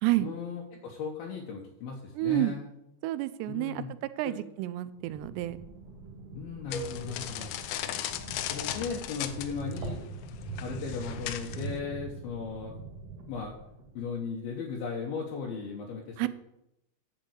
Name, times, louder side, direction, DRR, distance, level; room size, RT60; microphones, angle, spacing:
voice 1, 0.2-2.7 3.5-3.9 4.2-4.4 6.4-7.6 8.5-10.0 10.6-12.7 13.3-13.6 13.9-16.3, left 6 dB, 70° left, -1 dB, 2.9 m, -37 dB
voice 2, 2.2-2.6 3.0-3.8 4.2-5.6 16.2-16.3, right 17 dB, 85° right, 14 dB, 2.7 m, -29 dB
sound 1, 4.9-14.1, right 3 dB, 55° right, 3.7 m, -43 dB
sound 2, 6.7-11.8, left 12 dB, 90° left, 2.8 m, -37 dB
sound 3, 6.7-8.8, equal, 45° left, 1.6 m, -45 dB
10.5 x 5.3 x 8.2 m, 0.82 s
omnidirectional pair, 4.8 m